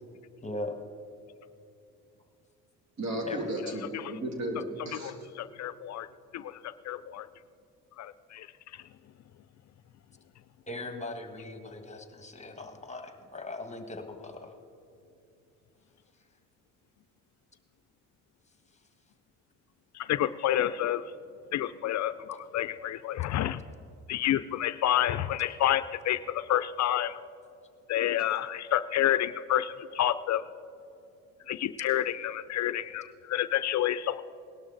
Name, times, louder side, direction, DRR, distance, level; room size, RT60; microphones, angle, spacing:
voice 1, 0.4-0.8 3.2-3.5 10.7-14.5, left 2 dB, 20° left, 6 dB, 1.5 m, -39 dB
voice 2, 3.0-5.1, right 1 dB, 50° right, 2 dB, 2.8 m, -34 dB
voice 3, 3.6-4.0 5.0-6.1 6.3-7.3 8.0-8.5 19.9-21.0 21.5-23.6 24.1-27.1 27.9-30.4 31.5-34.2, left 12 dB, 55° left, 14 dB, 0.5 m, -29 dB
18.5 x 12.0 x 3.9 m, 2.6 s
supercardioid pair, 70°, 34 cm